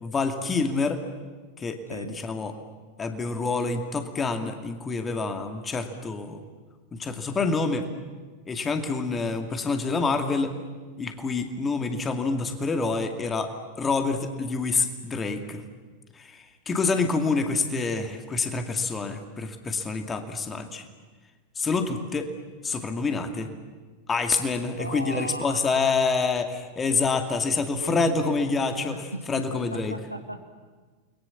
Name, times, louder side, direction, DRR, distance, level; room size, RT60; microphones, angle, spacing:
voice 1, 0.0-1.0 1.6-2.5 3.0-6.4 6.9-7.9 8.5-10.5 11.0-13.5 13.8-15.6 16.2-20.8 21.6-22.3 22.6-23.5 24.1-29.9, left 4 dB, 20° left, 7 dB, 2.3 m, -27 dB
voice 2, 1.9-2.2 24.8-26.2 27.7-28.2 28.7-30.4, equal, 90° right, 6 dB, 1.7 m, -37 dB
29.0 x 22.0 x 7.3 m, 1.4 s
figure-of-eight pair, 90°, 0 cm